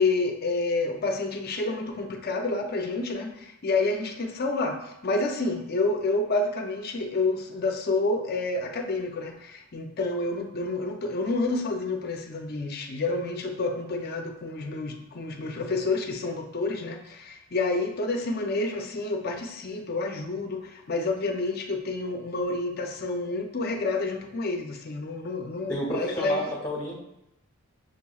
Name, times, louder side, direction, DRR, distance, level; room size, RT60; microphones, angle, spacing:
voice 1, 0.0-26.4, left 3 dB, 45° left, 3 dB, 0.5 m, -29 dB
voice 2, 25.7-27.0, equal, 15° left, -6 dB, 0.9 m, -30 dB
6.3 x 3.0 x 2.3 m, 0.84 s
head